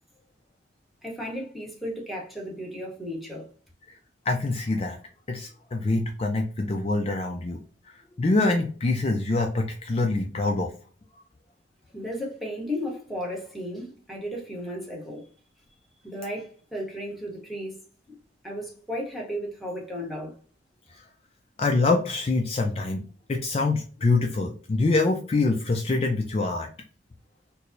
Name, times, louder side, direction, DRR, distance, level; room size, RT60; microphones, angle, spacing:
voice 1, 1.0-3.5 11.9-15.3 16.0-17.8 18.4-20.3, equal, ahead, 0.9 m, -34 dB
voice 2, 4.3-5.0 5.3-7.6 7.8-10.7 20.9-21.0 21.6-23.0 23.3-26.7, left 3 dB, 35° left, 0.4 m, -25 dB
4.5 x 2.0 x 2.6 m
head